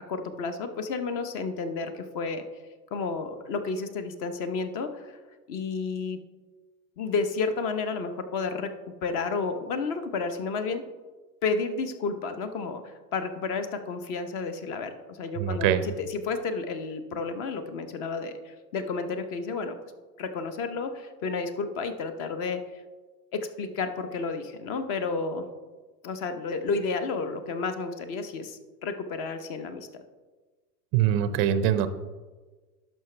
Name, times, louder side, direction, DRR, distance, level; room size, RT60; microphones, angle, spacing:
voice 1, 0.1-2.4 2.9-5.1 5.5-6.2 7.0-8.7 9.0-10.8 11.4-19.8 20.2-22.6 23.3-25.5 26.0-30.0, left 4 dB, 40° left, 9 dB, 0.9 m, -31 dB
voice 2, 15.4-15.8 30.9-31.9, right 10 dB, 30° right, 12 dB, 0.5 m, -23 dB
11.0 x 6.1 x 3.3 m, 1.3 s
hypercardioid pair, 115°, 49 cm